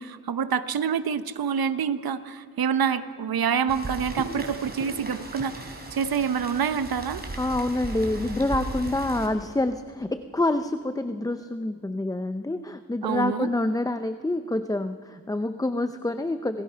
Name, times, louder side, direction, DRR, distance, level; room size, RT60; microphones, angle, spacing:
voice 1, 0.0-7.2 13.0-13.5, right 7 dB, 80° right, 12 dB, 1.0 m, -27 dB
Rain, 3.7-9.3, right 2 dB, 25° right, 4.2 m, -36 dB
voice 2, 7.4-16.6, left 2 dB, 10° left, 10 dB, 0.6 m, -27 dB
27.5 x 19.0 x 5.7 m, 2.1 s
wide cardioid pair, 105°, 36 cm